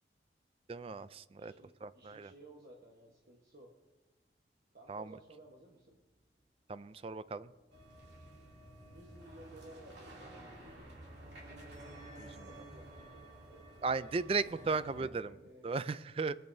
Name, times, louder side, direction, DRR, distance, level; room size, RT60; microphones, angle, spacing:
voice 1, 0.7-1.5 1.8-2.3 4.9-5.2 6.7-7.5 12.2-12.5 13.8-15.3 15.6-16.4, right 4 dB, 30° right, 15 dB, 0.3 m, -36 dB
voice 2, 1.4-3.7 4.7-6.0 8.8-10.4 12.2-14.5 14.7-15.8, right 1 dB, 55° right, -1 dB, 1.3 m, -57 dB
sound 1, 6.1-6.5 7.1-13.9, right 1 dB, 15° right, 1.2 m, -60 dB
sound 2, 7.7-15.1, right 1 dB, 80° right, 2.8 m, -53 dB
23.5 x 8.7 x 2.7 m, 1.1 s
head